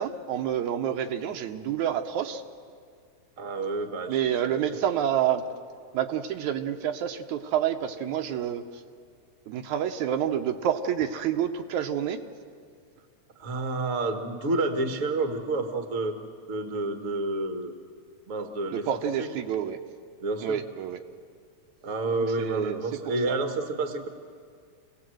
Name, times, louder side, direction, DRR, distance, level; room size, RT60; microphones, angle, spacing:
voice 1, 0.0-2.4 4.1-5.4 5.9-8.6 9.5-12.2 18.7-19.8 20.4-21.0 22.1-23.4, right 9 dB, 80° right, 6 dB, 2.3 m, -28 dB
voice 2, 3.4-4.6 13.4-16.2 16.5-17.7 18.3-19.3 20.2-20.6 21.8-24.1, right 2 dB, 40° right, 6 dB, 1.3 m, -29 dB
28.5 x 18.5 x 7.8 m, 2.1 s
omnidirectional pair, 3.5 m